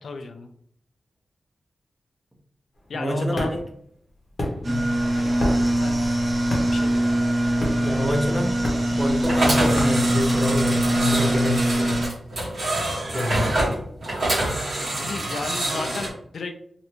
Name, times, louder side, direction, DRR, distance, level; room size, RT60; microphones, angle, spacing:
voice 1, 0.0-0.5 2.9-3.5 5.1-5.4 5.8-6.0 6.7-7.1 15.0-16.5, left 4 dB, 70° left, 6 dB, 0.3 m, -34 dB
sound 1, 2.7-10.9, left 1 dB, 30° left, 0.8 m, -31 dB
voice 2, 2.9-3.6 4.7-4.9 7.8-8.6 8.9-12.0 13.1-13.5, equal, 5° right, 1 dB, 0.6 m, -27 dB
sound 2, 4.6-12.1, right 1 dB, 40° right, 0.8 m, -22 dB
sound 3, 9.2-16.1, right 1 dB, 60° right, 1.4 m, -26 dB
3.2 x 2.5 x 2.9 m, 0.66 s
wide cardioid pair, 155°, 0 cm